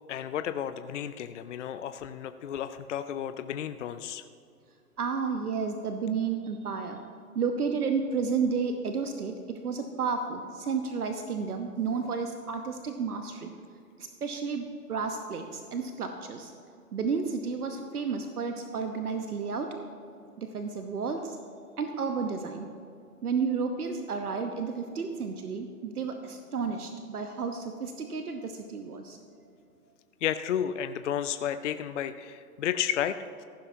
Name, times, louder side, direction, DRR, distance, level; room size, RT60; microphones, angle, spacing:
voice 1, 0.1-4.2 30.2-33.4, left 9 dB, 50° left, 11 dB, 0.5 m, -32 dB
voice 2, 5.0-7.0 7.3-13.5 14.0-16.5 16.9-19.7 20.4-21.4 21.8-22.7 23.2-29.2, right 5 dB, 70° right, 5 dB, 1.1 m, -32 dB
15.0 x 12.0 x 2.8 m, 2.4 s
figure-of-eight pair, 125°, 46 cm